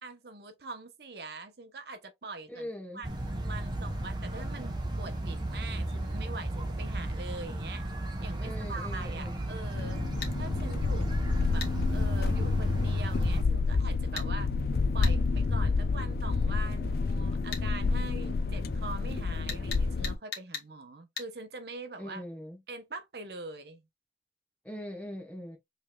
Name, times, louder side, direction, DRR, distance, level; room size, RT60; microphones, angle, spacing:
voice 1, 0.0-2.7 2.9-7.8 8.2-10.0 10.4-11.1 11.5-14.5 14.9-22.2 22.7-23.8, right 3 dB, 65° right, 0.8 m, -43 dB
voice 2, 2.5-3.0 8.4-9.4 22.0-22.6 24.6-25.6, equal, 10° left, 1.0 m, -41 dB
sound 1, 3.0-13.4, right 1 dB, 25° right, 0.9 m, -34 dB
sound 2, 9.7-20.2, left 4 dB, 55° left, 0.4 m, -29 dB
sound 3, 10.2-10.4 11.6-11.7 14.2-14.3 15.0-15.2 17.5-17.7 19.5-20.7 21.2-21.3, left 6 dB, 75° left, 1.3 m, -38 dB
5.3 x 3.2 x 2.3 m
head